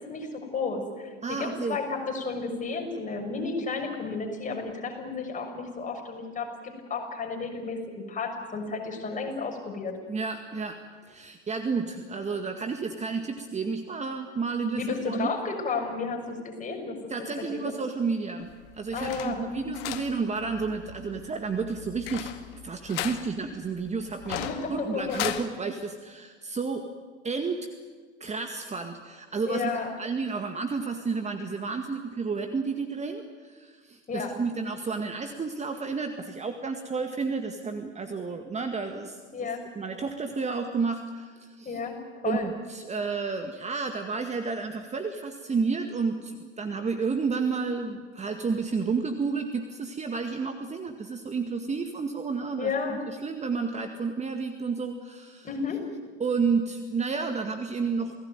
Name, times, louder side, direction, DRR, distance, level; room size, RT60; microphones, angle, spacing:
voice 1, 0.0-10.0 14.8-17.0 17.4-17.7 18.9-19.7 24.3-25.2 29.5-29.9 34.1-34.3 39.3-39.6 41.6-42.5 52.6-53.0 55.4-55.9, left 4 dB, 20° left, 2 dB, 6.5 m, -32 dB
voice 2, 1.2-1.8 10.1-10.8 11.1-15.3 17.1-18.5 18.7-22.3 22.6-26.8 27.2-27.7 28.2-29.7 30.0-39.5 39.8-41.8 42.2-55.5 56.2-58.1, right 4 dB, 20° right, 6 dB, 2.0 m, -31 dB
sound 1, 18.4-25.5, left 13 dB, 55° left, 2.0 m, -38 dB
28.5 x 18.0 x 9.3 m, 1.5 s
figure-of-eight pair, 85°, 35 cm